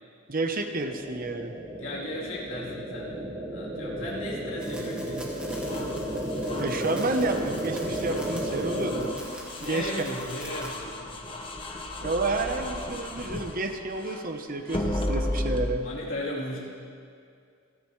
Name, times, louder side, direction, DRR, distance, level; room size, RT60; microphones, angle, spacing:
voice 1, 0.3-1.5 6.6-9.1 9.6-10.0 12.0-15.9, right 2 dB, 40° right, 6 dB, 0.8 m, -30 dB
sound 1, 0.8-9.1, right 1 dB, 25° right, 1.4 m, -33 dB
voice 2, 1.8-5.2 5.5-5.7 9.6-11.9 15.8-16.6, left 1 dB, 65° left, -6 dB, 3.3 m, -37 dB
sound 2, 4.6-10.7, equal, 5° right, 2.0 m, -46 dB
sound 3, 5.5-14.3 14.7-15.7, left 1 dB, 25° left, 0.9 m, -35 dB
28.0 x 10.5 x 3.2 m, 2.3 s
head